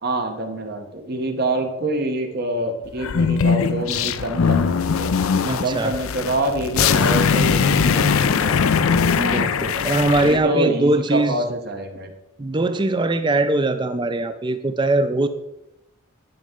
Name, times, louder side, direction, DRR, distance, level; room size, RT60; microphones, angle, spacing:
voice 1, 0.0-5.1 5.6-8.6 10.2-12.1, right 1 dB, 45° right, 5 dB, 0.9 m, -26 dB
sound 1, 3.0-10.4, left 6 dB, 70° left, 0.4 m, -20 dB
voice 2, 5.4-5.9 9.2-11.4 12.4-15.3, right 2 dB, 20° right, 10 dB, 0.4 m, -21 dB
10.5 x 5.3 x 3.7 m, 0.90 s
head